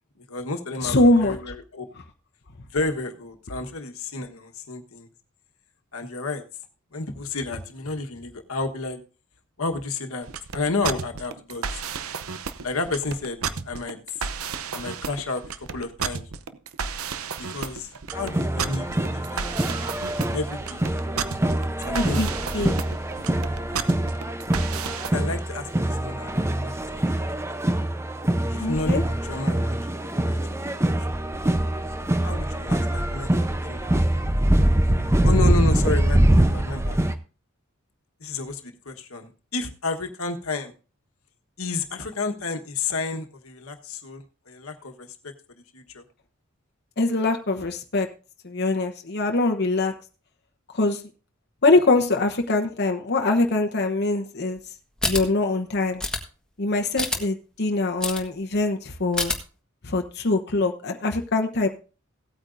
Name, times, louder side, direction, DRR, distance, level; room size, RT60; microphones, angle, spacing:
voice 1, 0.2-1.8 2.7-5.1 5.9-6.4 6.9-9.0 9.6-10.3 10.5-11.7 12.6-14.2 14.7-15.4 15.7-16.3 17.4-20.1 20.3-20.8 21.8-22.3 25.1-27.0 28.5-31.1 32.2-33.3 33.6-33.9 35.2-37.0 38.2-40.7 41.6-45.3 45.7-46.0, left 3 dB, 85° left, 5 dB, 1.3 m, -31 dB
voice 2, 0.8-1.3 21.9-22.8 28.6-29.0 47.0-48.1 48.4-49.9 50.7-51.0 51.6-54.6 55.0-56.0 56.6-59.3 59.8-61.7, left 2 dB, 50° left, 3 dB, 1.0 m, -23 dB
sound 1, 10.2-25.1, right 6 dB, 90° right, 0.8 m, -32 dB
sound 2, 18.1-37.1, right 1 dB, 15° right, 0.7 m, -24 dB
sound 3, 55.0-55.2 56.0-56.2 57.0-57.2 58.0-58.2 59.1-59.4, left 2 dB, 5° left, 1.5 m, -25 dB
17.0 x 8.8 x 2.6 m, 0.35 s
head